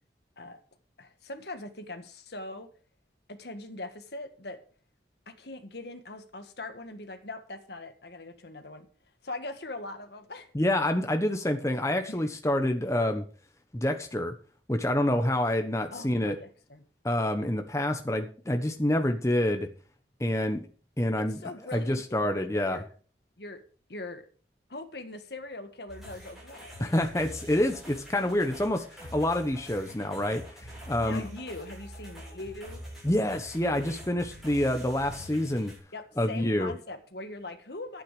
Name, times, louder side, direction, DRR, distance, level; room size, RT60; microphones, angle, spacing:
voice 1, 1.0-2.7 3.3-4.6 5.3-8.9 9.2-10.5 12.1-12.3 15.9-16.9 21.2-22.9 23.4-23.6 23.9-24.3 24.7-26.9 29.9-30.3 31.0-32.8 35.9-38.0, left 2 dB, 65° left, 8 dB, 1.6 m, -41 dB
voice 2, 10.5-13.2 13.7-14.3 14.7-16.4 17.0-19.7 20.2-20.7 21.0-21.4 21.7-22.8 26.8-31.2 33.0-35.7 36.2-36.7, left 1 dB, 15° left, 6 dB, 1.0 m, -27 dB
sound 1, 25.9-35.8, equal, ahead, 8.0 m, -45 dB
11.5 x 9.0 x 5.0 m, 0.41 s
head